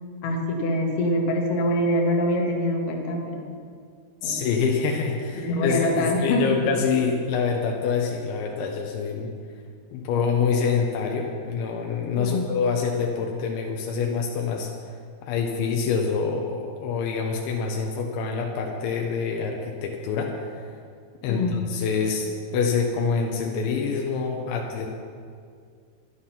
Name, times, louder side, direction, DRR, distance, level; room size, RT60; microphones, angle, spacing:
voice 1, 0.2-3.6 4.2-4.4 5.4-6.6 12.2-12.5 21.3-21.6, left 1 dB, 65° left, 1 dB, 3.2 m, -24 dB
voice 2, 4.2-9.3 9.9-14.7 15.2-20.6 21.2-24.9, left 5 dB, 80° left, 1 dB, 3.3 m, -26 dB
12.0 x 11.0 x 5.7 m, 2.2 s
omnidirectional pair, 5.3 m